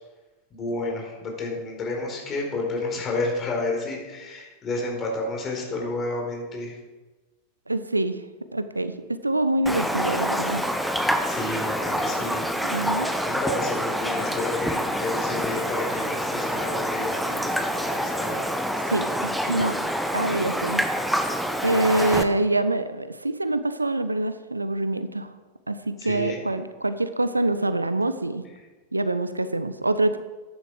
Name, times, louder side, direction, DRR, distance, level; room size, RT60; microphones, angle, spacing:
voice 1, 0.5-6.8 11.2-12.4 13.2-18.4 26.0-26.4, left 2 dB, 25° left, 0 dB, 4.3 m, -31 dB
voice 2, 7.7-8.2 8.5-10.6 12.6-13.1 18.9-19.8 20.1-20.8 21.6-25.3 25.7-28.4 28.9-30.2, right 2 dB, 80° right, 12 dB, 0.7 m, -25 dB
Raindrop, 9.7-22.2, equal, ahead, 1.1 m, -27 dB
14.0 x 10.5 x 4.9 m, 1.3 s
figure-of-eight pair, 90°, 0 cm